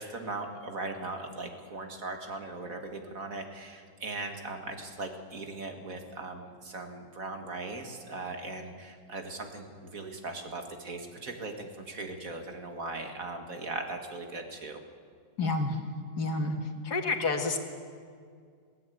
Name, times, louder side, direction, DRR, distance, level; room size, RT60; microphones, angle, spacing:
voice 1, 0.0-14.8, right 2 dB, 50° right, 4 dB, 2.2 m, -39 dB
voice 2, 15.4-15.8 16.2-16.6 16.8-17.6, left 3 dB, 65° left, 4 dB, 2.2 m, -29 dB
21.0 x 16.5 x 9.3 m, 2.1 s
omnidirectional pair, 1.9 m